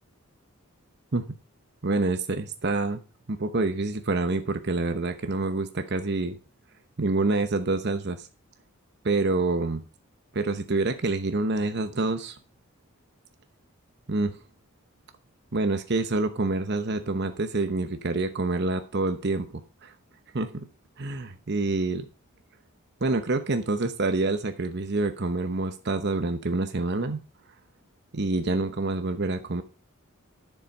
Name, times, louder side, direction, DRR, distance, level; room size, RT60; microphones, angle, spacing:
voice 1, 1.8-3.0 3.3-6.4 7.0-8.3 9.0-9.8 10.3-12.4 14.1-14.4 15.5-19.9 20.3-20.7 21.0-22.0 23.0-27.2 28.1-29.6, right 3 dB, 50° right, 8 dB, 0.9 m, -27 dB
11.0 x 7.1 x 5.3 m, 0.34 s
head